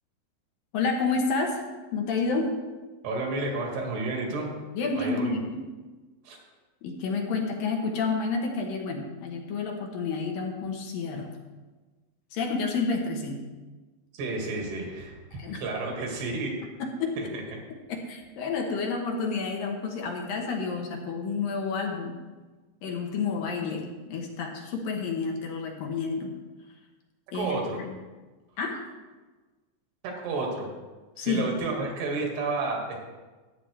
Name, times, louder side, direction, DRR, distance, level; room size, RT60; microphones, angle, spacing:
voice 1, 0.7-1.6 1.9-2.6 4.7-5.7 6.8-11.3 12.3-13.4 15.3-15.6 16.8-17.2 17.9-22.2 22.8-26.3 27.3-28.0 28.6-28.8 31.2-31.5, left 4 dB, 70° left, 1 dB, 2.6 m, -30 dB
voice 2, 3.0-4.5 4.9-5.3 6.3-6.4 14.2-15.1 15.6-16.5 17.2-17.3 27.3-27.8 30.0-30.7 31.2-33.0, right 3 dB, 90° right, 0 dB, 4.0 m, -31 dB
13.5 x 10.0 x 3.3 m, 1.3 s
omnidirectional pair, 4.6 m